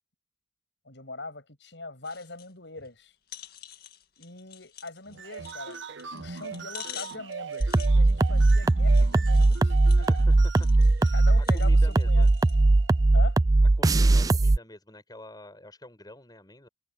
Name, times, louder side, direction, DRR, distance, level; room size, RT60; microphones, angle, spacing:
voice 1, 0.9-3.1 4.2-10.1 11.1-12.3 13.1-13.4, left 3 dB, 75° left, 7.2 m, -42 dB
sound 1, 2.0-2.5 2.9-3.0 3.3-12.6 13.1-13.2, left 11 dB, 55° left, 1.9 m, -47 dB
sound 2, 5.1-13.3, right 6 dB, 90° right, 1.0 m, -42 dB
sound 3, 7.6-14.6, right 2 dB, 20° right, 0.3 m, -20 dB
voice 2, 10.0-10.7 11.0-12.3 13.8-16.7, left 1 dB, 20° left, 7.3 m, -47 dB
head